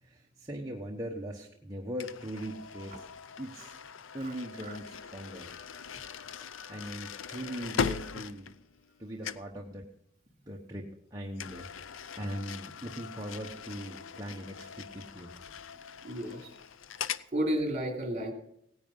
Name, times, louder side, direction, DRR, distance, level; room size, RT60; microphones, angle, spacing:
voice 1, 0.0-3.1 3.4-3.8 4.1-5.6 5.9-6.0 6.7-8.5 9.0-9.9 10.4-15.6, equal, 20° right, -1 dB, 1.1 m, -40 dB
sound 1, 2.0-9.0 9.2-9.6 11.4-17.3, left 6 dB, 85° left, 0.6 m, -40 dB
voice 2, 16.0-16.5 17.3-18.3, right 1 dB, 40° right, 2 dB, 3.1 m, -32 dB
17.5 x 10.0 x 5.5 m, 0.74 s
head